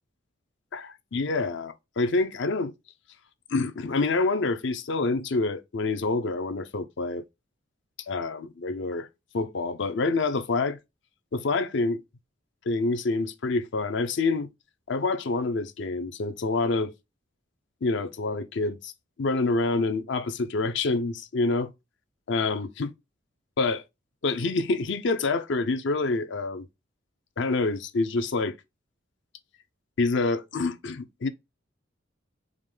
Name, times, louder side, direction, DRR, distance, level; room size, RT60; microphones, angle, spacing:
voice 1, 0.7-2.7 3.5-7.2 8.1-9.1 9.3-10.8 11.3-12.0 12.7-14.5 14.9-16.9 17.8-18.9 19.2-21.7 22.3-22.9 23.6-23.8 24.2-26.7 27.4-28.5 30.0-31.3, left 3 dB, 65° left, 0.5 m, -27 dB
4.8 x 2.2 x 3.5 m
head